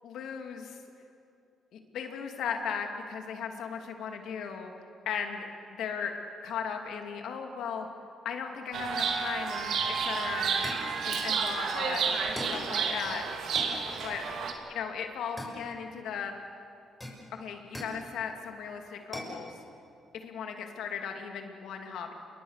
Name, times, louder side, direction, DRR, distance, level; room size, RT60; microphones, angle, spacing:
voice 1, 0.0-0.8 1.7-4.7 5.1-5.5 5.8-6.1 6.4-7.9 8.2-10.7 11.0-12.1 12.5-13.2 14.0-14.2 14.7-16.3 17.3-19.6 20.2-22.1, left 7 dB, 80° left, 4 dB, 2.9 m, -37 dB
Chirp tweet, 8.7-14.5, right 5 dB, 70° right, 2.7 m, -31 dB
sound 1, 10.6-11.0 12.4-12.7 13.6-13.8 15.4-16.0 17.0-18.1 19.1-19.4, left 1 dB, 10° left, 6.3 m, -40 dB
28.0 x 22.5 x 6.8 m, 2.6 s
cardioid pair, 90°, 0 cm